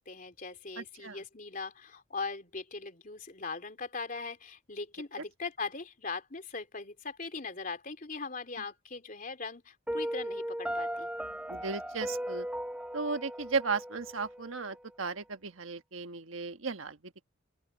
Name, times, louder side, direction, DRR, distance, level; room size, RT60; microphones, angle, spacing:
voice 1, 0.0-11.1, left 4 dB, 45° left, 3.3 m, -40 dB
voice 2, 0.8-1.2 11.5-12.5 12.9-17.3, right 4 dB, 85° right, 1.3 m, -35 dB
Piano, 9.9-14.8, equal, 5° right, 0.6 m, -37 dB
open air
head